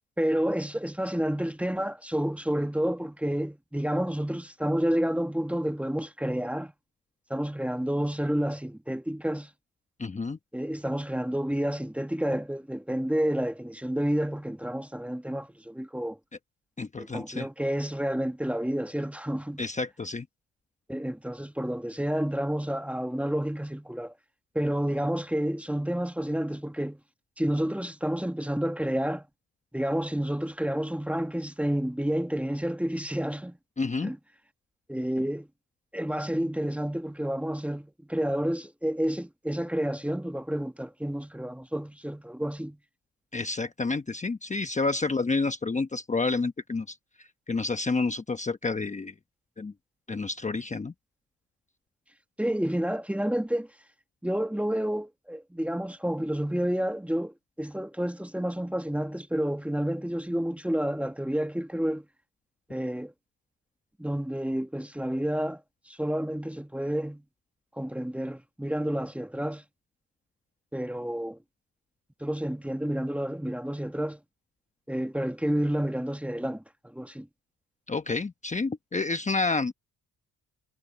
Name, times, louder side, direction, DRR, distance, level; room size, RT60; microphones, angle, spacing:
voice 1, 0.2-6.7 7.3-9.5 10.5-16.2 17.0-19.6 20.9-24.1 24.5-27.0 27.4-29.2 29.7-33.6 34.0-34.2 34.9-35.5 35.9-42.8 52.4-53.7 54.2-62.0 62.7-63.1 64.0-65.6 65.9-67.2 67.8-69.6 70.7-71.4 72.2-74.2 74.9-76.6 76.9-77.3, equal, 5° right, 1.5 m, -30 dB
voice 2, 10.0-10.4 16.8-17.5 19.6-20.3 33.8-34.1 43.3-47.0 47.5-49.1 49.6-49.7 50.1-50.9 77.9-79.7, left 3 dB, 20° left, 1.0 m, -29 dB
cardioid pair, 80°, 35 cm